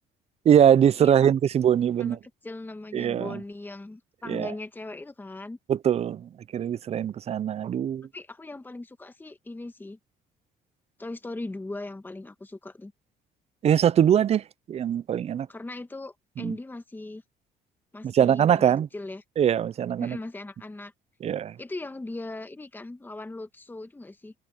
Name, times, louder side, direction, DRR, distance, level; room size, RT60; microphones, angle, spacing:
voice 1, 0.5-2.2 2.9-3.4 4.3-4.5 5.7-8.1 13.6-15.5 16.4-16.6 18.0-18.9 19.4-20.2 21.2-21.5, right 9 dB, 40° right, 0.5 m, -22 dB
voice 2, 1.0-1.3 2.0-2.2 2.4-5.6 8.1-10.0 11.0-12.9 15.5-17.2 17.9-19.2 20.0-20.9 21.6-24.3, left 2 dB, 10° left, 1.4 m, -39 dB
cardioid pair, 110°, 17 cm